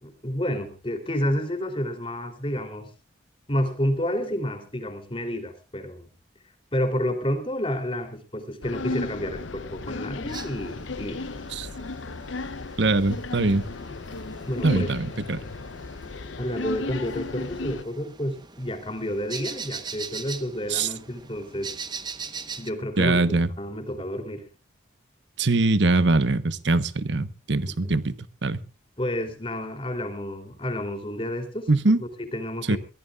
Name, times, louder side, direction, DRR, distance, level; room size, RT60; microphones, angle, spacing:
voice 1, 0.0-2.9 3.5-6.1 6.7-11.2 14.5-14.9 16.4-21.7 22.6-24.4 27.6-28.0 29.0-31.7 32.0-32.8, equal, 30° left, 3.2 m, -30 dB
sound 1, 8.6-17.8, left 3 dB, 85° left, 0.8 m, -35 dB
sound 2, 10.3-22.7, right 5 dB, 20° right, 1.0 m, -41 dB
voice 2, 12.8-13.7 14.6-15.4 20.7-20.9 23.0-23.5 25.4-28.6 31.7-32.0 32.7-32.8, right 2 dB, 70° right, 1.1 m, -22 dB
23.0 x 17.0 x 2.4 m
head